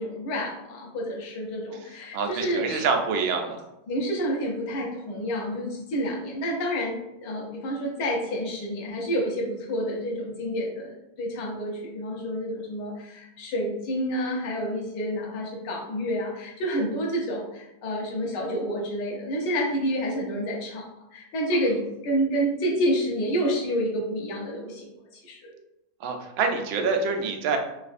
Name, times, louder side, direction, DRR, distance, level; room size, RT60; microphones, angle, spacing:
voice 1, 0.0-2.8 3.9-20.9 21.1-25.5, equal, 65° left, -1 dB, 1.3 m, -29 dB
voice 2, 2.1-3.6 26.0-27.6, right 4 dB, 90° right, 4 dB, 1.4 m, -26 dB
4.0 x 2.5 x 2.4 m, 0.89 s
omnidirectional pair, 2.1 m